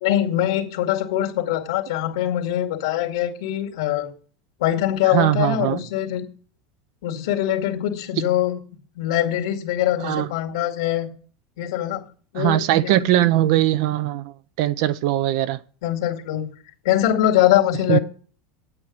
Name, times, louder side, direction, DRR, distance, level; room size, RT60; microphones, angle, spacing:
voice 1, 0.0-4.1 4.6-6.3 7.0-8.6 9.0-11.1 11.6-12.0 12.3-13.3 15.8-16.5 16.8-18.0, left 12 dB, 85° left, 2.1 m, -23 dB
voice 2, 5.1-5.8 10.0-10.3 12.4-15.6 17.9-18.0, right 14 dB, 65° right, 0.5 m, -20 dB
9.2 x 8.9 x 6.3 m
supercardioid pair, 155°, 3 cm